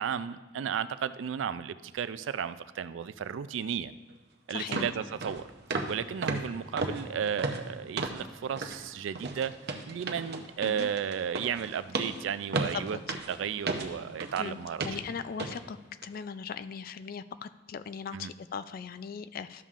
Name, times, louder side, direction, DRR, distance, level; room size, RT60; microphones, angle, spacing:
voice 1, 0.0-3.9 4.5-5.5 5.9-13.0 13.3-15.0 18.1-18.3, right 8 dB, 90° right, 14 dB, 0.4 m, -34 dB
sound 1, 4.1-4.2 4.7-4.9 5.2-5.4 5.7-6.0 6.2-8.3 8.6-8.8 9.1-14.4 14.8-15.0 15.4-15.6 16.0-16.2, right 3 dB, 60° right, 0.7 m, -34 dB
voice 2, 4.5-4.9 10.6-10.9 12.7-13.0 14.4-15.8 16.0-19.6, left 6 dB, 50° left, 13 dB, 0.3 m, -39 dB
12.0 x 7.1 x 2.5 m, 1.3 s
head